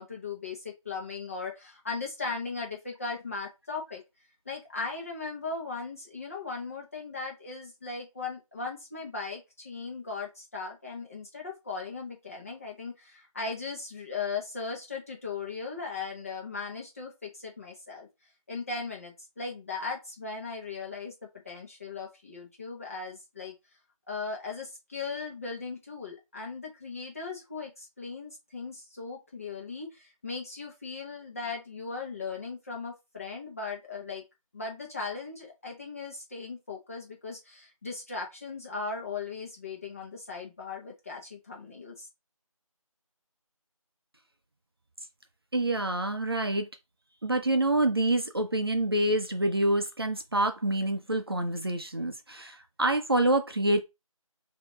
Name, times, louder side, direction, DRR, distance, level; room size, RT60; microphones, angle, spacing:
voice 1, 0.0-4.0 4.4-18.1 18.5-21.1 21.4-23.5 24.1-34.2 34.5-42.1, left 4 dB, 25° left, 1.2 m, -38 dB
voice 2, 45.5-46.7 47.2-53.8, right 1 dB, 45° right, 0.6 m, -27 dB
4.4 x 2.8 x 3.9 m
figure-of-eight pair, 170°, 18 cm